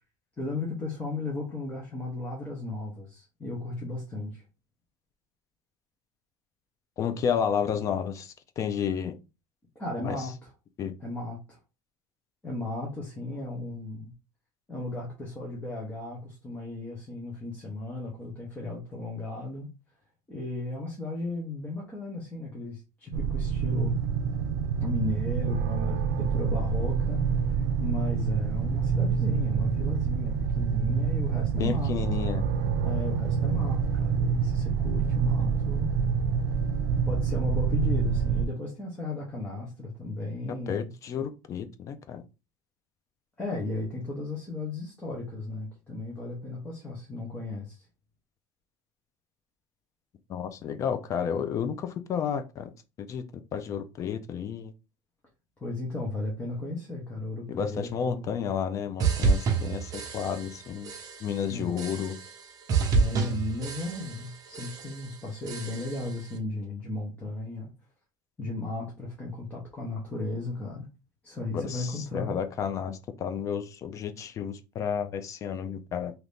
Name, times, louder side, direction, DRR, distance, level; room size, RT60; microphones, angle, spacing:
voice 1, 0.4-4.4 9.7-10.5 11.0-11.6 12.4-14.1 14.7-19.7 20.3-24.0 24.8-31.9 32.2-32.4 32.8-36.0 37.1-40.9 43.4-47.8 55.6-58.3 61.5-61.8 62.9-67.7 68.4-70.9 71.2-72.3, left 2 dB, 15° left, 0.9 m, -35 dB
voice 2, 7.0-9.1 10.0-10.3 10.8-10.9 31.5-32.4 40.7-42.2 50.3-52.7 53.1-53.2 53.5-54.7 57.5-60.9 61.2-62.2 71.5-76.1, left 7 dB, 35° left, 0.4 m, -31 dB
sound 1, 23.1-38.5, right 6 dB, 90° right, 0.4 m, -27 dB
sound 2, 59.0-60.6 60.8-61.4 61.8-62.4 62.7-64.3 64.5-65.1 65.5-66.1, right 5 dB, 40° right, 0.8 m, -28 dB
2.8 x 2.6 x 3.4 m
cardioid pair, 145°, 9 cm